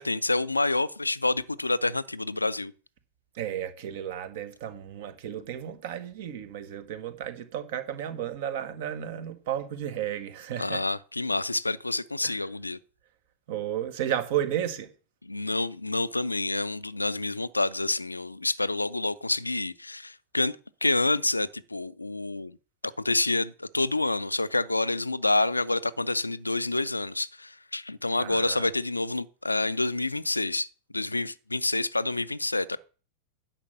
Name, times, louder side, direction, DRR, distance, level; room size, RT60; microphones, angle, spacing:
voice 1, 0.0-2.7 10.6-12.8 15.2-22.5 23.0-30.7 30.9-32.8, left 2 dB, 85° left, 0.4 m, -28 dB
voice 2, 3.3-10.8 12.2-12.4 13.5-14.9 28.2-28.7, right 10 dB, 50° right, 1.2 m, -33 dB
10.0 x 5.8 x 7.0 m
figure-of-eight pair, 90°, 0 cm